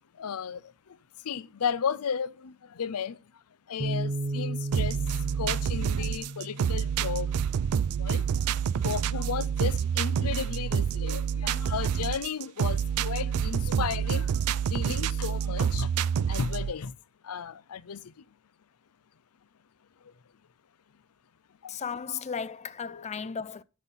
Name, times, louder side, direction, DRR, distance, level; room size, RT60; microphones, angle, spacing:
voice 1, 0.2-0.6 1.3-3.2 3.7-5.0 5.4-7.3 8.0-8.4 8.8-14.3 14.7-15.9 16.3-16.9 17.2-18.0 21.6-21.7 22.9-23.3, left 7 dB, 85° left, 0.5 m, -34 dB
sound 1, 3.8-10.0, right 2 dB, 30° right, 0.8 m, -37 dB
sound 2, 4.7-16.7, right 7 dB, 80° right, 0.4 m, -28 dB
voice 2, 21.7-23.6, left 6 dB, 30° left, 0.4 m, -35 dB
12.5 x 4.3 x 5.4 m
head